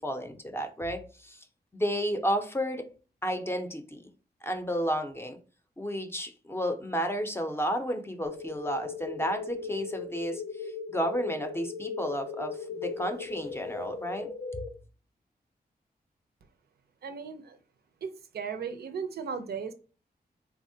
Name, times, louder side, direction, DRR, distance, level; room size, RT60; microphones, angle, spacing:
voice 1, 0.0-1.4 1.7-2.9 3.2-4.1 4.4-5.4 5.8-14.3, equal, 15° left, 0.5 m, -32 dB
sound 1, 8.2-14.7, left 5 dB, 80° left, 0.4 m, -38 dB
voice 2, 17.0-17.6 18.0-19.7, right 6 dB, 75° right, 0.4 m, -36 dB
3.4 x 2.0 x 2.6 m
wide cardioid pair, 90°, 16 cm